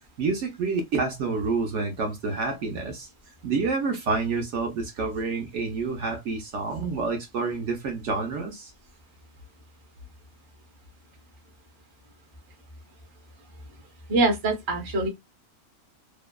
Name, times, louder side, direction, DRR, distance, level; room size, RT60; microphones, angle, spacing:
voice 1, 0.2-3.1 3.4-8.7, right 4 dB, 65° right, 0.8 m, -28 dB
voice 2, 14.1-15.1, right 2 dB, 25° right, 0.5 m, -23 dB
2.7 x 2.2 x 2.2 m
omnidirectional pair, 1.5 m